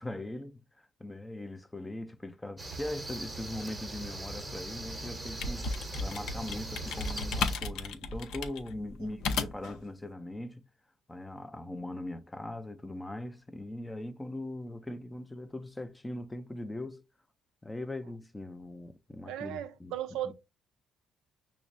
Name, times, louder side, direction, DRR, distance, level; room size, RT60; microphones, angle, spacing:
voice 1, 0.0-10.7 11.1-17.0 17.6-19.9 20.3-20.4, left 1 dB, 10° left, 0.4 m, -40 dB
sound 1, 2.6-7.6, right 2 dB, 20° right, 0.8 m, -41 dB
sound 2, 5.3-9.8, left 4 dB, 75° left, 0.6 m, -34 dB
voice 2, 19.3-20.3, right 11 dB, 90° right, 0.4 m, -36 dB
6.0 x 2.0 x 2.5 m
cardioid pair, 115°, 0 cm